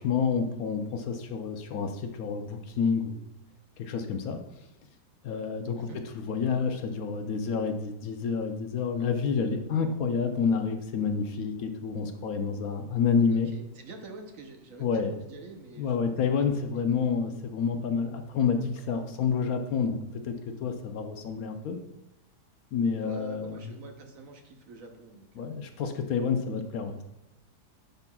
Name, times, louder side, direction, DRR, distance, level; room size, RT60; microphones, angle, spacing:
voice 1, 0.0-3.3 3.8-4.4 5.2-5.9 6.1-13.5 14.8-15.2 15.8-20.0 20.2-21.8 22.7-23.6 25.4-27.0, left 6 dB, 70° left, 6 dB, 1.0 m, -29 dB
voice 2, 13.3-16.0 23.0-25.6, right 3 dB, 65° right, 4 dB, 1.0 m, -46 dB
10.5 x 5.6 x 2.3 m, 0.91 s
omnidirectional pair, 1.7 m